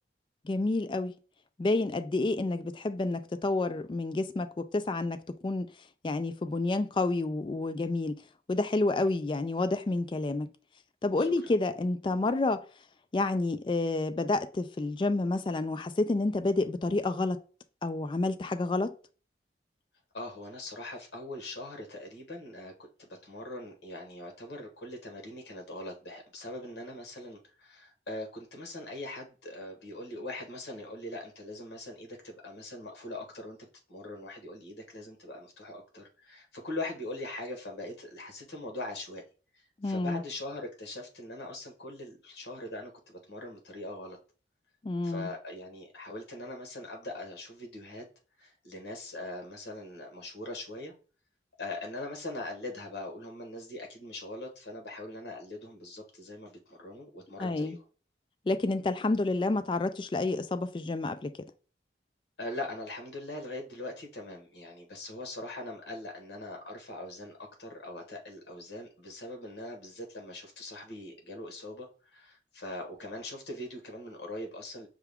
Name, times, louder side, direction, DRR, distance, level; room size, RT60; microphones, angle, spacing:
voice 1, 0.4-1.1 1.6-5.2 5.4-5.7 6.0-8.2 8.5-10.5 11.0-12.6 13.1-17.4 17.8-18.9 39.8-40.2 44.8-45.3 57.4-57.8 58.5-61.3, left 2 dB, 25° left, 0.3 m, -29 dB
voice 2, 20.1-33.6 33.9-39.2 39.5-44.2 45.0-48.0 48.4-50.9 51.6-57.8 62.4-74.9, left 1 dB, 75° left, 1.4 m, -41 dB
5.8 x 2.3 x 3.5 m
head